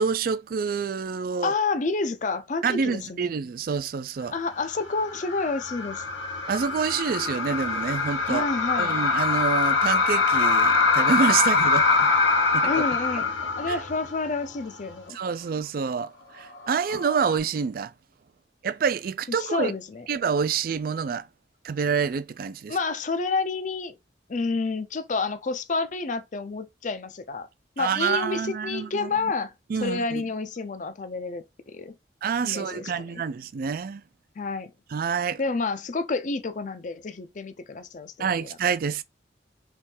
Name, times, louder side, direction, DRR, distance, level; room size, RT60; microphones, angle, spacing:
voice 1, 0.0-1.5 2.6-4.3 6.5-8.5 8.8-11.9 12.5-12.7 13.7-13.8 15.1-17.9 18.6-19.7 20.1-21.3 21.6-22.8 27.8-29.3 29.7-30.2 32.2-34.0 34.9-35.4 38.2-39.0, right 6 dB, 50° right, 0.3 m, -27 dB
voice 2, 1.4-3.3 4.3-6.0 8.3-8.9 12.6-13.3 13.6-15.2 19.4-20.0 22.7-24.0 24.3-27.5 27.8-29.5 29.8-32.0 32.4-33.2 34.4-34.7 35.4-38.5, left 4 dB, 45° left, 0.5 m, -29 dB
sound 1, 4.7-14.3 14.6-14.7 16.8-17.4, left 4 dB, 85° left, 1.5 m, -24 dB
3.5 x 3.1 x 4.3 m
head